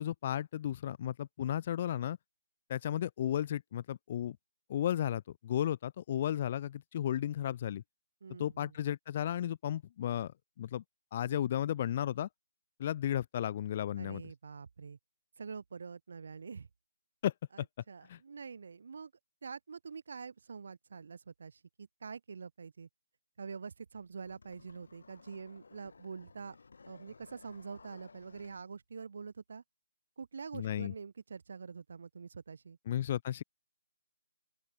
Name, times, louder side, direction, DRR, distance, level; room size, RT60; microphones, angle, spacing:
voice 1, 0.0-2.2 2.7-4.4 4.7-7.8 8.4-10.3 10.6-10.8 11.1-12.3 12.8-14.2 17.2-17.7 18.1-18.2 30.5-30.9 32.9-33.4, left 11 dB, 30° left, 0.4 m, -34 dB
voice 2, 8.2-8.8 14.0-15.0 15.4-16.7 17.5-19.1 19.4-22.9 23.4-26.6 26.9-29.6 30.2-32.8, right 5 dB, 55° right, 0.6 m, -46 dB
sound 1, 24.0-28.7, left 4 dB, 75° left, 1.1 m, -58 dB
open air
hypercardioid pair, 170°, 0 cm